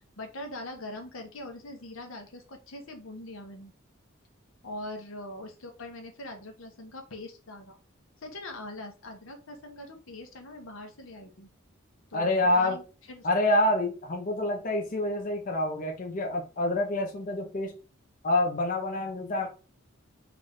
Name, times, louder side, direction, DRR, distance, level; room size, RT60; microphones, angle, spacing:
voice 1, 0.2-3.7 4.6-7.8 8.2-11.5 12.1-13.3, left 1 dB, 75° left, 4 dB, 0.9 m, -42 dB
voice 2, 12.1-12.8 13.2-17.7 18.2-19.5, left 1 dB, 40° left, 1 dB, 0.6 m, -27 dB
3.4 x 2.6 x 3.4 m, 0.34 s
head